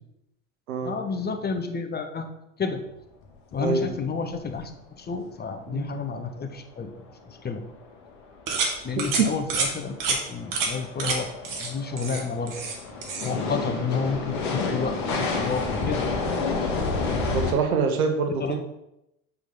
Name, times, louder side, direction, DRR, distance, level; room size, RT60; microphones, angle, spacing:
voice 1, 0.8-2.3 2.6-2.8 3.5-4.7 5.0-7.0 7.3-7.7 8.8-12.6 13.2-16.1 18.4-18.6, left 5 dB, 20° left, 7 dB, 1.0 m, -30 dB
sound 1, 3.2-3.3 3.5-3.6 3.9-4.1 4.6-4.7 7.7-7.8 8.3-17.5, left 3 dB, 50° left, 1.8 m, -30 dB
sound 2, 8.5-8.7 9.0-9.2 9.5-9.7 10.0-10.2 10.5-10.7 11.0-11.2 11.4-11.7 12.0-12.8 13.0-13.3, right 4 dB, 45° right, 1.8 m, -27 dB
voice 2, 9.0-9.3 17.3-18.6, right 5 dB, 80° right, 5 dB, 1.0 m, -25 dB
8.0 x 5.1 x 3.9 m, 0.86 s
hypercardioid pair, 75°, 43 cm